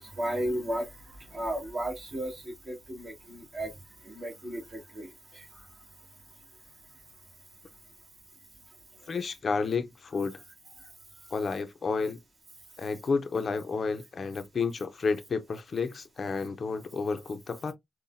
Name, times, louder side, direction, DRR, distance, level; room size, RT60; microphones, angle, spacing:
voice 1, 0.2-0.9 1.3-3.7 4.1-5.1, right 1 dB, 45° right, 1.9 m, -34 dB
voice 2, 9.1-10.4 11.3-12.2 12.8-17.7, left 4 dB, 45° left, 0.5 m, -31 dB
5.5 x 2.1 x 2.5 m
wide cardioid pair, 145°, 0 cm